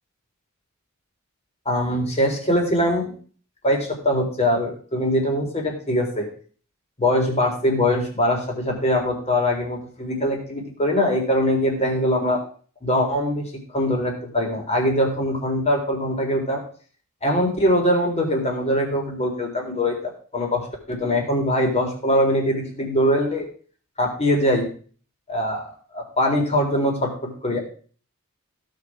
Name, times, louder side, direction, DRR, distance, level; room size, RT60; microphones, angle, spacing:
voice 1, 1.7-3.1 3.6-6.3 7.0-12.4 12.8-16.6 17.2-20.6 20.9-23.5 24.0-24.7 25.3-25.7 25.9-27.6, equal, 30° left, 1 dB, 3.7 m, -22 dB
16.5 x 6.8 x 4.8 m, 0.43 s
head